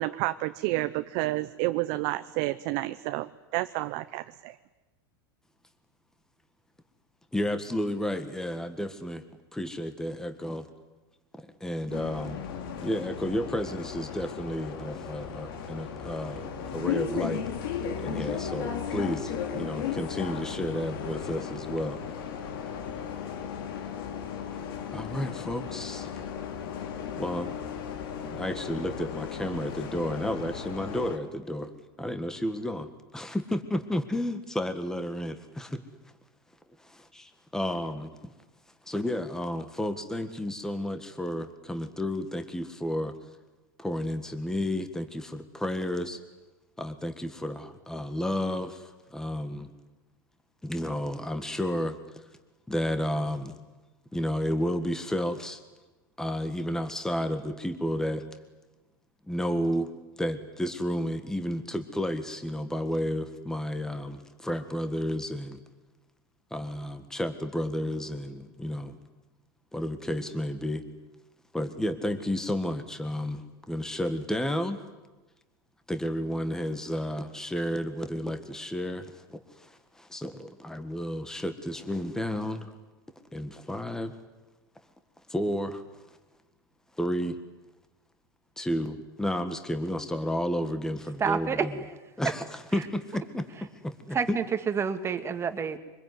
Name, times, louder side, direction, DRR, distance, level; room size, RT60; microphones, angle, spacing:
voice 1, 0.0-4.6, right 18 dB, 55° right, 10 dB, 0.8 m, -30 dB
voice 2, 7.3-9.2 9.5-10.7 11.4-12.4 12.8-17.4 18.0-22.0 24.8-26.1 27.2-27.5 28.3-31.7 32.0-35.8 36.8-38.3 38.8-43.1 43.8-46.2 46.8-49.7 50.6-52.2 52.7-53.6 54.1-55.6 56.2-58.2 59.2-59.9 60.2-65.6 66.5-69.0 69.7-70.8 71.5-74.9 75.9-82.7 83.3-84.1 85.3-86.2 87.0-87.4 88.6-91.7 92.2-94.4, equal, 5° left, 9 dB, 1.8 m, -32 dB
Bus, 11.9-31.2, left 7 dB, 75° left, 3.1 m, -35 dB
voice 3, 91.2-91.7 94.1-95.8, right 6 dB, 20° right, 8 dB, 1.9 m, -28 dB
25.0 x 21.5 x 9.7 m, 1.1 s
supercardioid pair, 130°, 12 cm